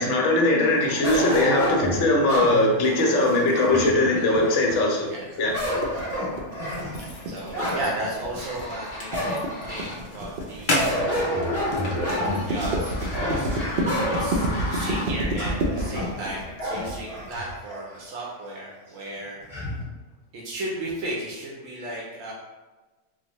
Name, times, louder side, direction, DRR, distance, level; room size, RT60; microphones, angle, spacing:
voice 1, 0.0-5.1 5.4-5.5, left 2 dB, 70° left, 0 dB, 1.0 m, -20 dB
sound 1, 1.0-4.9 5.3-7.9 8.3-8.4 9.1-9.7 10.8-17.8 18.3-18.4 19.5-19.8, left 1 dB, 10° left, 1.2 m, -29 dB
voice 2, 5.7-6.2 7.3-9.4 9.7-11.5 12.0-13.6 14.0-19.4 20.3-22.3, right 1 dB, 85° right, -4 dB, 1.0 m, -35 dB
sound 2, 5.8-17.4, right 1 dB, 60° right, 0.6 m, -29 dB
sound 3, 6.6-15.4, left 1 dB, 50° left, 0.7 m, -33 dB
3.9 x 2.1 x 2.9 m, 1.2 s
omnidirectional pair, 1.3 m